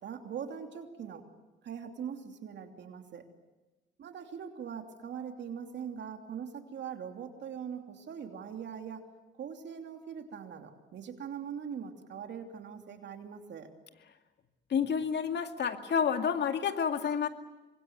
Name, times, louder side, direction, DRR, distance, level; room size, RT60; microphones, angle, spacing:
voice 1, 0.0-1.2 1.6-3.2 4.0-9.0 9.4-13.7, right 7 dB, 65° right, 5 dB, 3.0 m, -41 dB
voice 2, 14.7-17.3, left 7 dB, 60° left, 7 dB, 2.3 m, -29 dB
26.0 x 22.0 x 9.4 m, 1.1 s
cardioid pair, 90°, 20 cm